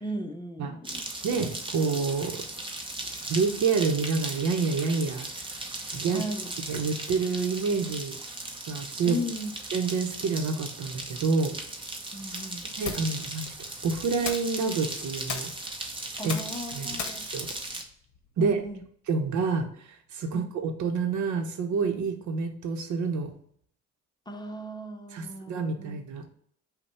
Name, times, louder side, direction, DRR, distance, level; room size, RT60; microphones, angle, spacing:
voice 1, 0.0-1.0 6.1-6.5 9.0-9.5 12.1-12.7 16.2-17.2 18.4-18.8 20.3-20.5 24.3-26.0, equal, 15° left, 5 dB, 0.6 m, -36 dB
sound 1, 0.8-17.8, right 2 dB, 15° right, 0.8 m, -37 dB
voice 2, 1.2-2.4 3.3-5.3 5.9-6.2 6.7-8.2 8.7-9.2 9.7-11.5 12.3-12.4 12.8-13.5 13.8-15.5 16.2-16.3 16.7-16.9 17.3-17.5 18.4-18.6 19.1-19.7 20.1-23.3 25.1-26.2, right 4 dB, 70° right, 6 dB, 0.8 m, -28 dB
sound 2, 11.7-18.9, left 7 dB, 65° left, 0.8 m, -41 dB
5.4 x 2.2 x 4.2 m, 0.64 s
cardioid pair, 90°, 30 cm